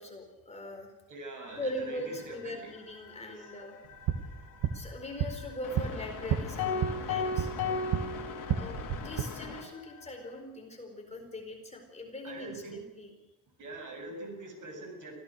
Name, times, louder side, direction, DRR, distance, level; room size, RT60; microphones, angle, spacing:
voice 1, 0.0-0.9 1.6-3.7 4.7-7.5 8.5-13.1, left 1 dB, 15° left, 3 dB, 4.4 m, -41 dB
voice 2, 1.1-2.7 3.1-3.5 12.2-12.8 13.6-15.1, right 2 dB, 50° right, 4 dB, 7.7 m, -43 dB
sound 1, 1.5-10.4, left 7 dB, 55° left, 4.0 m, -46 dB
sound 2, 3.8-8.1 8.4-9.2, right 8 dB, 90° right, 2.0 m, -33 dB
sound 3, 6.6-9.1, left 4 dB, 70° left, 4.3 m, -34 dB
25.0 x 16.5 x 6.5 m, 0.93 s
cardioid pair, 125°, 39 cm